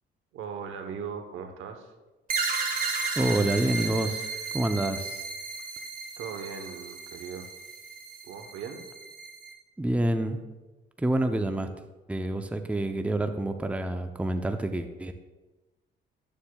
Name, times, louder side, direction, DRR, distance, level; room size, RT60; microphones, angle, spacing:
voice 1, 0.3-1.9 6.2-7.5 8.2-8.9, right 6 dB, 85° right, 6 dB, 0.9 m, -38 dB
sound 1, 2.3-9.5, right 4 dB, 45° right, 1.5 m, -34 dB
voice 2, 3.2-4.3 4.5-5.2 9.8-10.4 11.0-11.7 12.1-15.1, right 1 dB, 5° right, 7 dB, 0.5 m, -27 dB
11.0 x 7.1 x 2.3 m, 1.1 s
cardioid pair, 90°, 20 cm